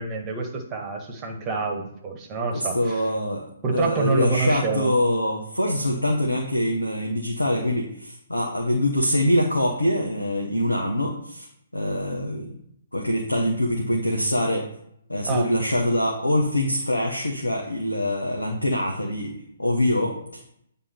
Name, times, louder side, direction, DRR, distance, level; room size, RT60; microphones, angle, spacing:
voice 1, 0.0-3.0 3.6-4.9 15.3-15.5, right 3 dB, 20° right, 3 dB, 1.3 m, -27 dB
voice 2, 2.5-3.4 3.7-11.5 11.7-12.6 12.9-14.7 15.1-20.4, left 1 dB, 90° left, 0 dB, 1.1 m, -24 dB
8.8 x 3.7 x 4.4 m, 0.73 s
figure-of-eight pair, 130°, 0 cm